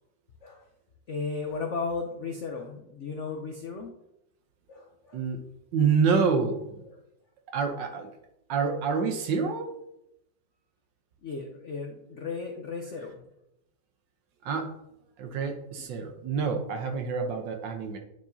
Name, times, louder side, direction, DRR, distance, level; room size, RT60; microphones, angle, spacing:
voice 1, 1.1-3.9 4.7-5.3 6.9-7.0 8.5-8.7 11.2-13.3 15.8-15.9, left 4 dB, 70° left, 2 dB, 0.7 m, -35 dB
voice 2, 5.7-6.8 7.5-8.1 8.5-9.7 14.4-14.7 15.2-18.0, right 5 dB, 70° right, 4 dB, 1.5 m, -27 dB
9.2 x 4.9 x 2.7 m, 0.84 s
omnidirectional pair, 2.2 m